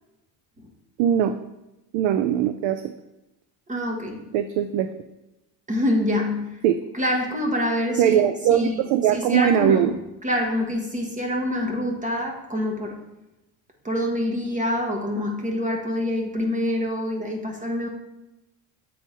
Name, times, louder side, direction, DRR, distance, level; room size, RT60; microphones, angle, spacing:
voice 1, 1.0-1.4 1.9-2.9 4.3-4.9 6.6-6.8 8.0-10.0, right 10 dB, 70° right, 9 dB, 0.5 m, -21 dB
voice 2, 3.7-4.2 5.7-6.6 6.9-8.2 8.5-8.8 9.1-9.9 10.2-13.0 13.8-17.9, left 1 dB, 15° right, 2 dB, 1.1 m, -26 dB
7.7 x 3.8 x 4.1 m, 0.95 s
cardioid pair, 125°, 49 cm